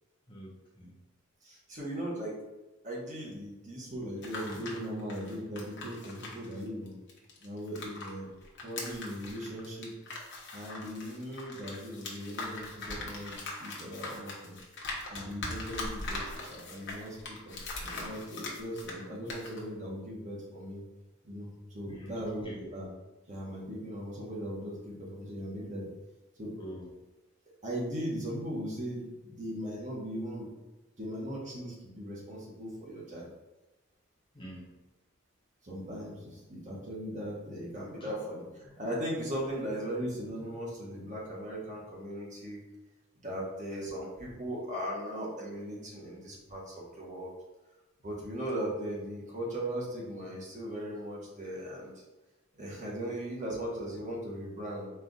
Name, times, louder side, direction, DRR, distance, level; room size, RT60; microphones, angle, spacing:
voice 1, 0.3-0.9 21.9-22.6 26.6-26.9 34.3-34.7, equal, 25° left, -4 dB, 0.8 m, -45 dB
voice 2, 1.4-2.4 2.8-6.9 7.4-8.3 8.6-9.9 10.5-14.6 15.1-20.8 21.2-22.9 23.3-25.9 26.4-26.5 27.6-30.5 31.0-33.3 35.6-42.6 43.2-47.3 48.0-52.0 52.6-54.9, equal, 35° right, -4 dB, 1.0 m, -38 dB
sound 1, 4.0-8.1 8.4-19.0 19.3-19.6, left 2 dB, 55° left, 0.9 m, -41 dB
4.4 x 2.4 x 3.8 m, 1.1 s
head